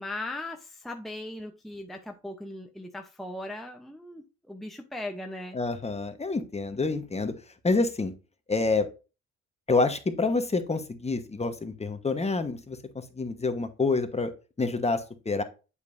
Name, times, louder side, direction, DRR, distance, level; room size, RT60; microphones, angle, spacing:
voice 1, 0.0-5.6, left 1 dB, ahead, 3 dB, 0.8 m, -38 dB
voice 2, 5.5-7.3 7.6-8.1 8.5-8.9 9.7-14.3 14.6-15.4, left 3 dB, 20° left, 8 dB, 1.1 m, -27 dB
8.2 x 5.3 x 2.6 m, 0.31 s
cardioid pair, 90°, 30 cm